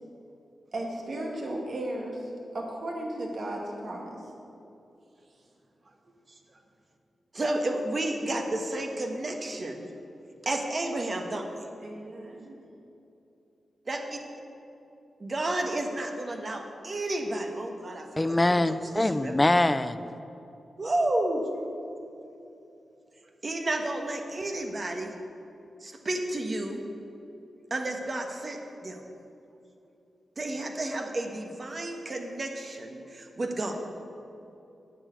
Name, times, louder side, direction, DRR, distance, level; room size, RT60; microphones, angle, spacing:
voice 1, 0.7-2.3 2.5-4.2 11.8-12.5, right 1 dB, 65° right, 2.1 m, -35 dB
voice 2, 7.3-9.9 10.4-11.7 13.9-14.2 15.2-19.3 20.8-21.4 23.4-25.1 25.8-26.8 27.7-29.0 30.4-33.7, right 1 dB, 45° right, 1.4 m, -31 dB
voice 3, 18.2-20.0, left 1 dB, 20° left, 0.5 m, -23 dB
9.2 x 6.7 x 8.2 m
cardioid pair, 60°, 0 cm